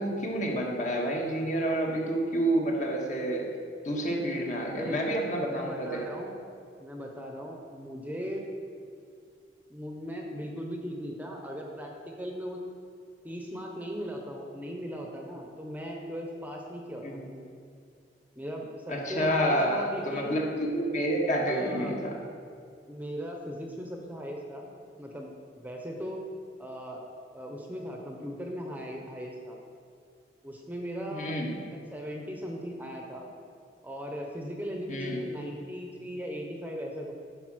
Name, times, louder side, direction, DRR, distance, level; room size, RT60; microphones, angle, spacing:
voice 1, 0.0-3.4 3.8-6.0 17.0-17.3 18.9-22.2 31.1-31.5 34.9-35.2, right 1 dB, 45° left, -1 dB, 1.5 m, -29 dB
voice 2, 5.4-6.3 6.8-8.4 9.7-12.6 13.2-17.5 18.4-20.3 21.1-22.0 22.9-24.7 25.0-26.2 26.6-27.0 27.3-29.6 30.4-31.4 31.7-33.3 33.8-37.1, equal, 10° right, 0 dB, 0.8 m, -38 dB
11.0 x 4.9 x 6.1 m, 2.4 s
head